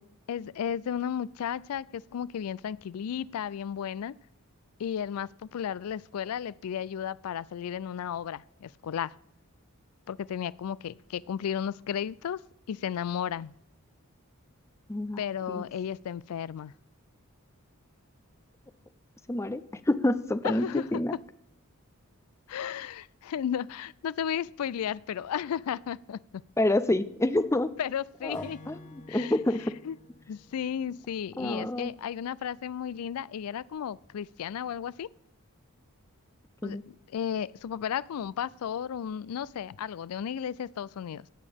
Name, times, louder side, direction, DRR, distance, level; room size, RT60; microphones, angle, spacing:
voice 1, 0.3-4.2 4.8-9.1 10.1-12.4 12.7-13.5 15.2-16.7 20.4-21.0 22.5-26.4 27.8-28.6 29.1-29.3 29.8-30.0 30.3-35.1 36.6-41.3, left 8 dB, 80° left, 0.3 m, -34 dB
voice 2, 14.9-15.2 15.5-15.6 19.3-19.6 19.9-21.1 26.6-27.7 28.2-28.8 29.1-29.7 31.4-31.9 36.6-36.8, left 1 dB, 10° left, 0.4 m, -27 dB
Acoustic guitar / Strum, 28.3-31.8, left 2 dB, 35° left, 1.3 m, -52 dB
16.5 x 8.4 x 3.5 m
head